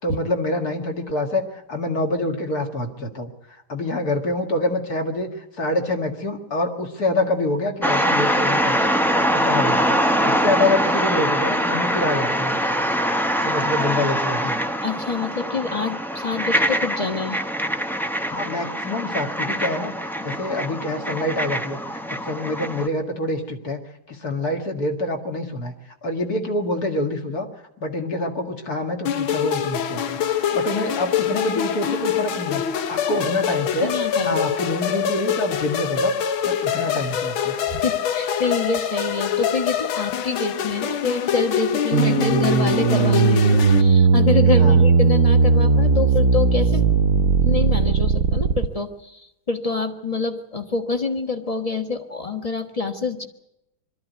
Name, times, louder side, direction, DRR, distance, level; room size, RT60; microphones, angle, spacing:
voice 1, 0.0-3.3 3.7-5.3 5.6-12.5 13.4-14.6 18.3-23.8 24.1-25.8 26.0-27.5 27.8-33.9 34.2-36.1 36.4-37.5 44.6-44.8, left 2 dB, 50° left, 4 dB, 2.4 m, -26 dB
sound 1, 7.8-22.9, equal, ahead, 0.4 m, -23 dB
voice 2, 14.8-17.4 33.8-34.4 37.7-46.9 47.4-53.3, left 4 dB, 20° left, 7 dB, 1.2 m, -26 dB
sound 2, 29.1-43.8, left 8 dB, 85° left, 1.9 m, -25 dB
sound 3, 41.9-48.7, right 5 dB, 50° right, 1.1 m, -17 dB
22.5 x 13.5 x 9.3 m, 0.84 s
omnidirectional pair, 2.2 m